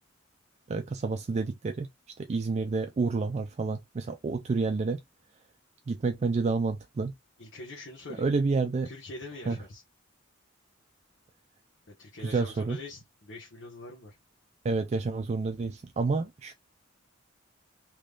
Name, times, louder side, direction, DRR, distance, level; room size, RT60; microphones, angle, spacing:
voice 1, 0.7-1.9 2.2-5.0 5.9-7.1 8.2-8.9 9.5-9.6 12.2-12.8 14.6-16.5, right 4 dB, 35° right, 0.3 m, -29 dB
voice 2, 7.4-8.3 8.8-9.8 11.9-14.2, left 2 dB, 65° left, 1.1 m, -44 dB
3.4 x 3.0 x 2.4 m
head